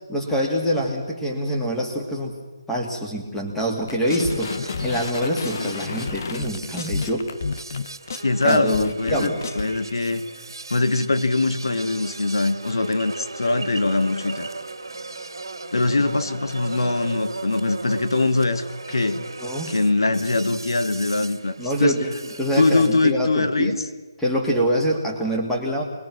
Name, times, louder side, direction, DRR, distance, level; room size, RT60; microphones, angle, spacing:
voice 1, 0.1-2.4 2.7-7.3 8.4-9.7 19.4-19.8 21.6-22.1 22.4-23.8 24.2-25.8, equal, 5° left, -2 dB, 2.4 m, -25 dB
sound 1, 3.9-9.6, left 4 dB, 45° left, 0.9 m, -31 dB
sound 2, 4.1-23.1, right 3 dB, 85° right, 2.3 m, -37 dB
voice 2, 8.2-10.3 10.7-14.5 15.7-19.2 19.7-22.0 22.6-23.8, left 2 dB, 85° left, 11 dB, 1.7 m, -22 dB
26.0 x 21.0 x 6.2 m, 1.2 s
hypercardioid pair, 165°, 2 cm